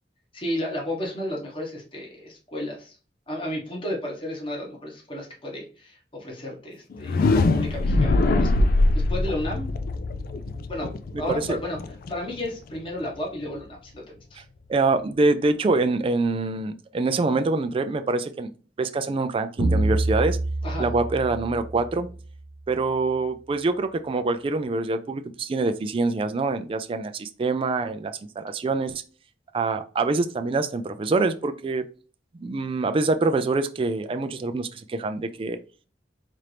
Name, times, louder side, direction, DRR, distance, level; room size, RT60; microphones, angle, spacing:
voice 1, 0.3-3.0 3.3-8.5 9.1-9.7 10.7-10.9 11.2-14.0 14.3-14.4 20.6-20.9, left 1 dB, 30° left, -1 dB, 1.2 m, -33 dB
sound 1, 6.9-12.8, left 2 dB, 55° left, 0.3 m, -23 dB
voice 2, 14.7-18.5 18.8-20.4 20.8-22.1 22.7-29.0 29.5-31.8 32.4-35.6, right 3 dB, 30° right, 8 dB, 0.3 m, -25 dB
sound 2, 19.6-22.3, right 2 dB, 55° right, 0.9 m, -26 dB
4.3 x 2.5 x 3.3 m, 0.37 s
head